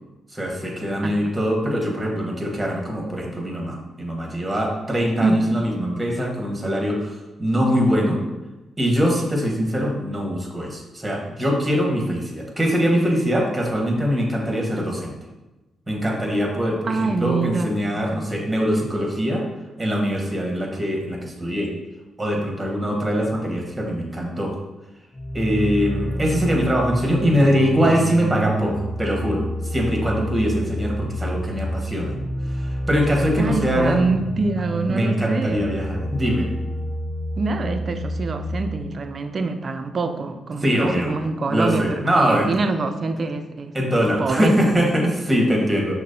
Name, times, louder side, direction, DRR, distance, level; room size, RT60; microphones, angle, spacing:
voice 1, 0.3-8.2 8.8-15.1 15.9-19.4 19.8-21.7 22.2-24.5 25.3-32.1 32.5-34.0 34.9-36.5 40.6-41.1 41.5-42.5 43.7-45.9, equal, 20° right, 0 dB, 1.1 m, -22 dB
voice 2, 1.0-1.3 5.2-5.5 16.9-17.7 18.1-18.3 33.4-35.7 37.4-43.8 44.2-44.5, right 3 dB, 50° right, 8 dB, 0.3 m, -25 dB
sound 1, 25.1-38.8, right 1 dB, 15° left, 0.8 m, -28 dB
5.9 x 2.0 x 2.6 m, 1.1 s
supercardioid pair, 60°, 0 cm